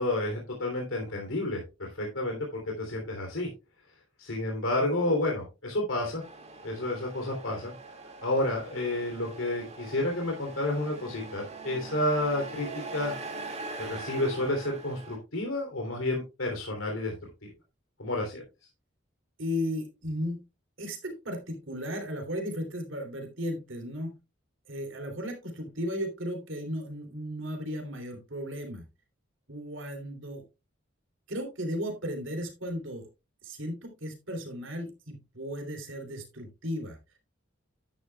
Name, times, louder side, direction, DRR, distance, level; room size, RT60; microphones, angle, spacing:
voice 1, 0.0-3.5 4.2-6.2 6.6-7.7 8.2-13.1 13.8-17.1 17.4-17.5 18.0-18.4, left 1 dB, 90° left, 1 dB, 3.2 m, -30 dB
Truck, 6.2-15.2, right 3 dB, 35° right, 2.1 m, -42 dB
voice 2, 19.4-20.4 20.8-24.2 24.7-28.9 29.5-30.4 31.3-33.1 33.4-37.0, equal, 75° right, 4 dB, 3.0 m, -35 dB
11.0 x 10.0 x 2.3 m, 0.27 s
head